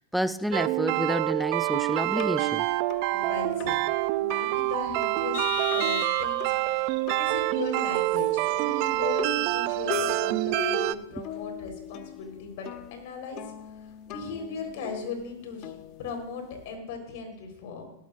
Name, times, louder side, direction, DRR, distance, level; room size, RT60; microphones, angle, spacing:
voice 1, 0.0-2.7 11.1-11.2, equal, ahead, 13 dB, 0.5 m, -29 dB
sound 1, 0.5-10.9, right 18 dB, 50° right, 0.5 m, -27 dB
sound 2, 1.4-16.7, left 13 dB, 45° left, 0.8 m, -42 dB
voice 2, 3.1-3.8 4.2-6.5 7.2-13.5 14.1-15.7 16.0-17.9, left 4 dB, 60° left, 4 dB, 4.2 m, -38 dB
Vehicle horn car horn honking, 5.3-6.7, left 12 dB, 80° left, 1.0 m, -35 dB
17.0 x 12.5 x 2.6 m, 0.86 s
hypercardioid pair, 120°, 0 cm